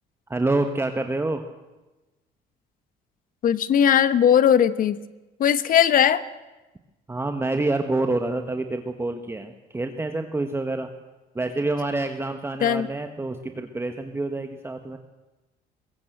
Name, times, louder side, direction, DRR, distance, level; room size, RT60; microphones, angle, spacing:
voice 1, 0.3-1.4 7.1-10.9 11.3-15.0, right 2 dB, 15° right, 6 dB, 1.3 m, -27 dB
voice 2, 3.4-5.0 5.4-6.2 12.6-12.9, left 9 dB, 55° left, 14 dB, 1.2 m, -18 dB
21.5 x 16.5 x 8.0 m, 1.1 s
cardioid pair, 110°, 17 cm